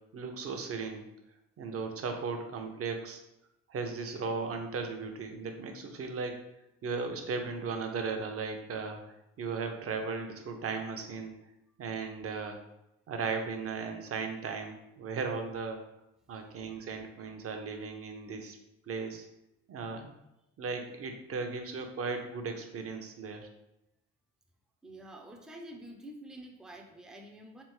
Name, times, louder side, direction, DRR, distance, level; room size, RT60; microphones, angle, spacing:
voice 1, 0.1-1.1 1.6-3.2 3.7-6.4 6.8-11.3 11.8-12.6 13.1-15.8 16.3-18.6 18.9-19.3 19.7-20.1 20.6-23.5, right 4 dB, 50° right, 4 dB, 0.7 m, -36 dB
voice 2, 24.8-27.6, right 1 dB, ahead, 2 dB, 0.5 m, -48 dB
3.6 x 3.5 x 3.1 m, 0.87 s
cardioid pair, 90°, 30 cm